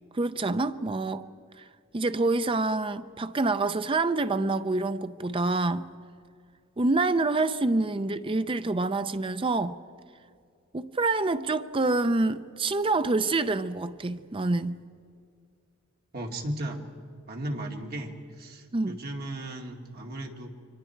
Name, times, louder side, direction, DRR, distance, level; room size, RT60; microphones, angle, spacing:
voice 1, 0.1-1.2 1.6-1.7 1.9-5.9 6.8-9.8 10.7-14.8 18.7-19.0, right 3 dB, 25° right, 0.5 m, -27 dB
voice 2, 16.1-16.8 17.3-20.5, right 1 dB, 50° right, 2.3 m, -36 dB
30.0 x 24.0 x 4.6 m
head